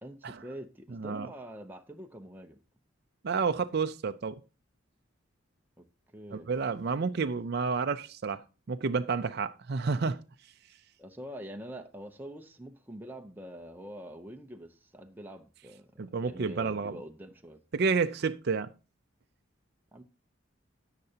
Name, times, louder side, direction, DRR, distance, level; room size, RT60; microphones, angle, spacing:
voice 1, 0.0-2.6 5.8-5.9 6.1-6.5 11.0-17.6 19.9-20.0, equal, 10° right, 0.7 m, -45 dB
voice 2, 0.9-1.3 3.2-4.3 6.3-10.2 16.0-16.9 17.7-18.7, right 5 dB, 50° right, 0.5 m, -30 dB
17.0 x 6.7 x 2.8 m
head